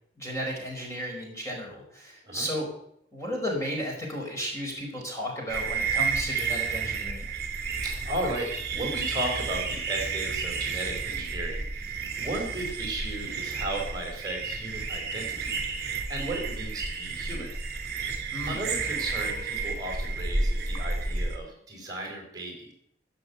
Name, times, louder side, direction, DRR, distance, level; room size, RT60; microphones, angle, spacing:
voice 1, 0.2-2.7 3.1-7.3 18.3-18.6, equal, 15° left, -1 dB, 4.9 m, -34 dB
sound 1, 5.5-21.4, right 4 dB, 55° right, 3.0 m, -31 dB
voice 2, 7.8-17.5 18.5-22.7, right 2 dB, 20° right, 0 dB, 4.5 m, -35 dB
15.5 x 7.8 x 8.1 m, 0.71 s
head